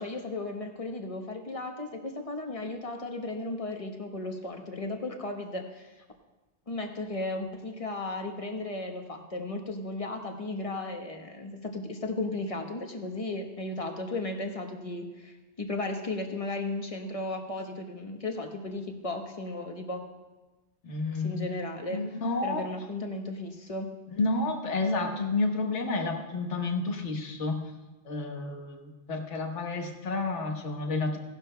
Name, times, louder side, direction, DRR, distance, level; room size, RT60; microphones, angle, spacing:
voice 1, 0.0-5.9 6.7-20.0 21.1-22.0 22.4-23.9, left 2 dB, 30° left, 3 dB, 1.1 m, -35 dB
voice 2, 20.8-21.5 21.9-22.7 24.2-27.7 28.0-31.2, left 3 dB, 85° left, 3 dB, 1.5 m, -30 dB
17.0 x 11.5 x 2.2 m, 1.2 s
omnidirectional pair, 1.2 m